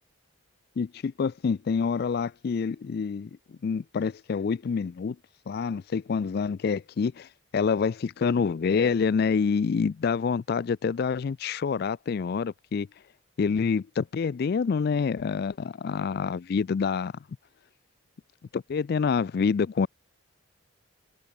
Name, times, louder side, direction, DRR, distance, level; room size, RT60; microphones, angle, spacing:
voice 1, 0.8-5.2 5.5-7.3 7.5-12.9 13.4-17.1 18.5-19.9, left 5 dB, 45° left, 0.3 m, -27 dB
head